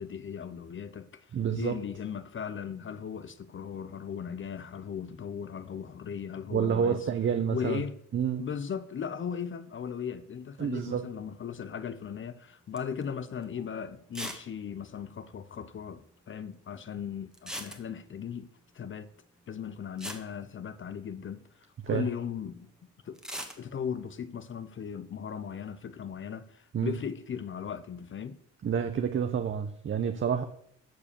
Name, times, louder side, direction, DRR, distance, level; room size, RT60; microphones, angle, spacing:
voice 1, 0.0-7.1 7.5-8.0 8.4-18.5 18.7-19.1 19.5-22.7 23.0-23.2 23.6-28.4, left 7 dB, 40° left, 0.7 m, -37 dB
voice 2, 1.3-1.8 6.5-7.8 8.1-8.4 10.6-11.0 21.8-22.1 26.7-26.9 28.6-30.4, right 7 dB, 40° right, 0.8 m, -28 dB
sound 1, 12.8-13.0 13.4-13.5 14.1-14.5 14.7-14.8 15.0-15.1 17.3-18.2 19.6-19.7 20.0-21.2 23.1-23.6, equal, ahead, 1.5 m, -39 dB
14.0 x 4.9 x 6.7 m
cardioid pair, 90°, 30 cm